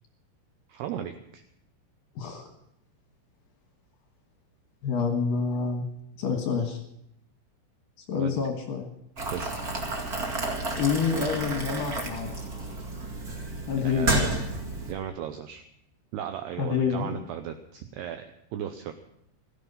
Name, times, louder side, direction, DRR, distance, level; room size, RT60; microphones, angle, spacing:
voice 1, 0.7-1.4 8.2-8.3 9.3-9.5 13.8-14.3 14.9-15.6 16.1-18.9, right 10 dB, 85° right, 7 dB, 2.3 m, -36 dB
voice 2, 2.2-2.5 4.8-5.9 6.2-6.8 8.1-8.9 10.8-12.4 13.7-14.2 16.6-17.1, left 6 dB, 65° left, 3 dB, 2.6 m, -27 dB
Boiling, 9.2-14.9, right 2 dB, 60° right, 0.9 m, -31 dB
16.5 x 13.5 x 5.5 m, 0.77 s
omnidirectional pair, 5.6 m